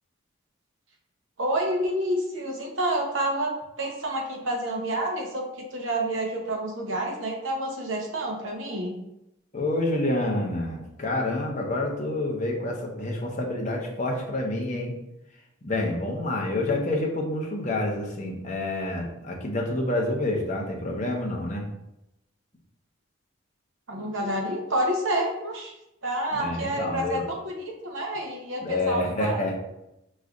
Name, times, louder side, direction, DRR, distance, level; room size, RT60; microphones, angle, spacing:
voice 1, 1.4-3.5 3.8-9.0 23.9-25.7 26.0-29.4, right 1 dB, 70° right, 0 dB, 0.9 m, -29 dB
voice 2, 9.5-14.9 15.6-21.6 26.3-27.2 28.6-29.6, left 2 dB, 35° left, -1 dB, 0.8 m, -28 dB
5.2 x 3.1 x 2.5 m, 0.85 s
head